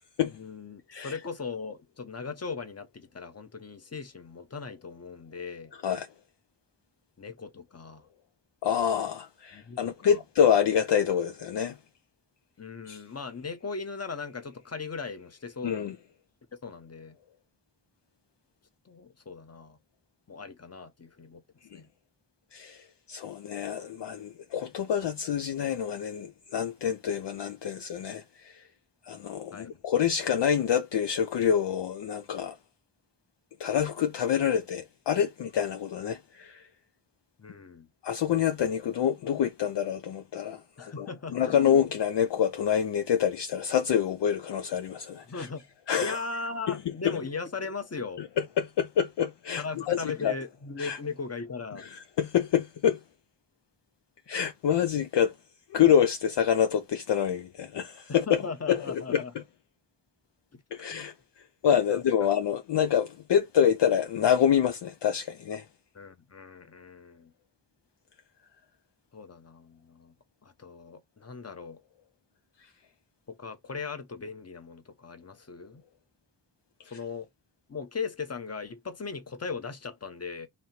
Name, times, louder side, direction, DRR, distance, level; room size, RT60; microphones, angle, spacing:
voice 1, 0.2-5.7 7.2-8.0 9.5-10.2 12.6-15.9 16.6-17.2 18.8-19.8 20.3-21.4 21.7-21.9 29.5-29.7 37.4-37.9 40.8-41.9 45.2-45.6 46.0-48.2 49.6-51.8 58.1-59.3 60.5-60.9 61.9-62.0 65.9-67.3 69.1-70.1 70.4-71.8 73.3-75.8 76.9-77.3 77.7-80.5, left 4 dB, 30° left, 0.9 m, -38 dB
voice 2, 8.6-11.8 12.9-13.0 15.6-15.9 22.5-22.8 23.1-28.5 29.1-32.6 33.6-36.7 38.0-41.1 41.3-45.5 45.9-46.2 46.7-46.8 47.0-47.2 48.6-50.3 50.8-51.0 51.9-53.0 54.3-55.3 55.7-58.4 58.7-59.2 60.7-61.1 61.6-65.6, left 8 dB, 60° left, 0.5 m, -26 dB
3.2 x 2.8 x 4.2 m
cardioid pair, 55°, 48 cm